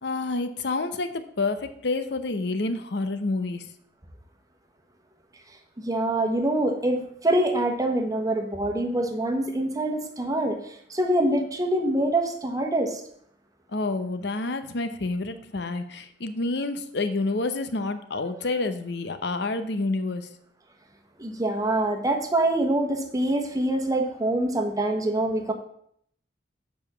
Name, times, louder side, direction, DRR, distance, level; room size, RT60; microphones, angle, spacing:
voice 1, 0.0-3.7 13.7-20.3, left 3 dB, 70° left, 9 dB, 0.8 m, -28 dB
voice 2, 5.8-13.0 21.2-25.5, right 1 dB, 20° right, 3 dB, 1.2 m, -25 dB
7.0 x 5.2 x 6.9 m, 0.67 s
head